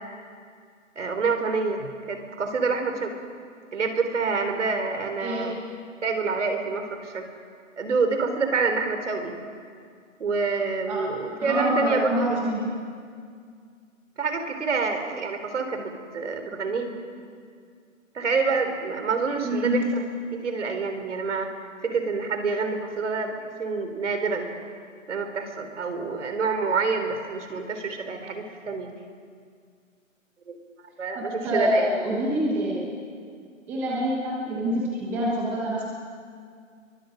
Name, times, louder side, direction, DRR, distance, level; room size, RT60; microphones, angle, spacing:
voice 1, 1.0-3.2 3.7-5.6 6.0-7.3 7.8-9.4 10.2-12.5 14.2-17.0 18.1-20.0 20.3-21.5 21.8-23.3 23.6-24.5 25.1-28.9 30.5-30.6 31.0-31.9, right 4 dB, 60° right, 6 dB, 3.7 m, -27 dB
voice 2, 5.2-5.6 10.9-11.0 11.4-12.7 19.4-19.9 31.1-32.9 33.7-35.8, equal, 5° right, -4 dB, 1.1 m, -26 dB
28.5 x 23.0 x 5.2 m, 2.2 s
hypercardioid pair, 170°, 40 cm